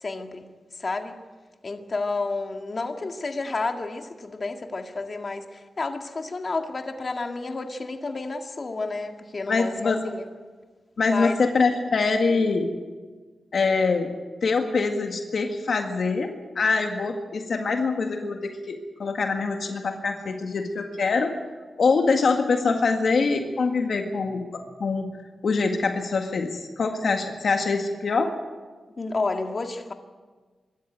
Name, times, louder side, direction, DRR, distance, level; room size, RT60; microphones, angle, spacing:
voice 1, 0.0-0.5 0.8-1.2 1.6-10.3 11.0-11.4 29.0-29.9, left 3 dB, 45° left, 4 dB, 2.0 m, -30 dB
voice 2, 9.5-10.0 11.0-12.7 13.5-14.1 14.4-21.3 21.8-25.1 25.4-28.3, left 4 dB, 70° left, 4 dB, 1.8 m, -24 dB
24.0 x 13.0 x 9.1 m, 1.4 s
cardioid pair, 60°, 0 cm